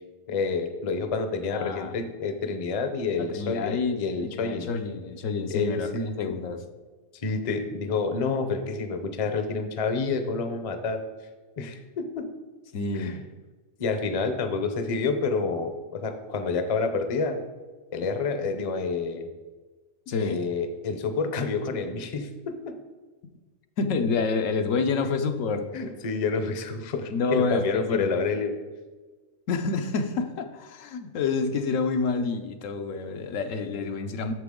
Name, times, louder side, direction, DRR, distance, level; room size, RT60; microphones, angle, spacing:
voice 1, 0.3-4.7 5.5-6.1 7.1-11.0 11.6-12.3 12.9-13.2 13.8-17.4 17.9-19.3 20.2-22.7 25.7-28.5, left 4 dB, 40° left, 8 dB, 0.6 m, -28 dB
voice 2, 1.4-2.0 3.2-5.9 6.2-6.6 12.7-13.2 20.1-20.4 23.8-25.7 27.1-28.2 29.5-34.3, left 4 dB, 80° left, 6 dB, 1.1 m, -28 dB
7.7 x 6.8 x 3.7 m, 1.3 s
omnidirectional pair, 1.3 m